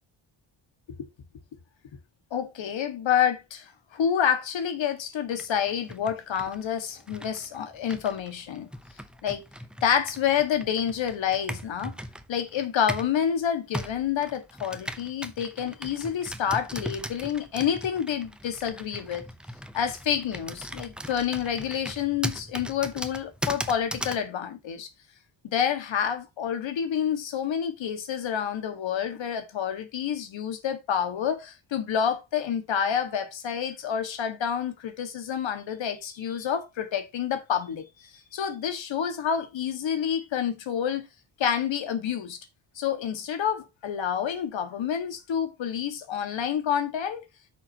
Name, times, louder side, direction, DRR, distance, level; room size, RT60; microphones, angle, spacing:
voice 1, 2.3-8.7 9.2-9.4 9.8-12.0 12.3-19.2 19.7-24.9 25.5-41.1 41.4-42.4 42.8-47.2, left 8 dB, 80° left, 1.7 m, -28 dB
Computer keyboard, 5.3-13.2 13.7-24.3, equal, ahead, 0.7 m, -38 dB
10.5 x 6.4 x 2.9 m
cardioid pair, 120°, 45 cm